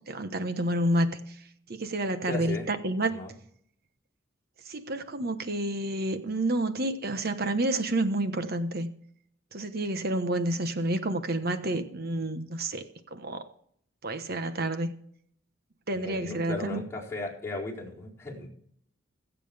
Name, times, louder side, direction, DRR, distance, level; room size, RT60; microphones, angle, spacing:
voice 1, 0.0-1.4 1.7-3.2 4.6-8.9 9.5-13.5 14.0-14.9 15.9-16.8, right 1 dB, 50° right, 9 dB, 1.2 m, -29 dB
voice 2, 2.2-2.7 3.1-3.3 15.9-18.5, left 2 dB, 15° left, -6 dB, 4.3 m, -36 dB
22.5 x 7.7 x 3.5 m, 0.67 s
head